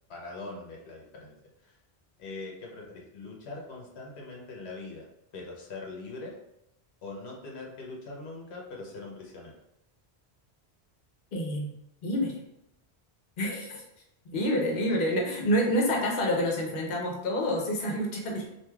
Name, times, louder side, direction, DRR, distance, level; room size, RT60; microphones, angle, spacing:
voice 1, 0.1-1.8 2.2-5.1 5.3-6.3 7.0-9.5 14.9-15.0 15.9-16.0 18.4-18.5, left 3 dB, 85° left, -1 dB, 1.0 m, -42 dB
voice 2, 11.3-11.7 12.0-12.3 13.4-13.8 14.3-18.5, equal, 60° left, -1 dB, 0.8 m, -28 dB
3.2 x 2.7 x 2.2 m, 0.85 s
omnidirectional pair, 1.1 m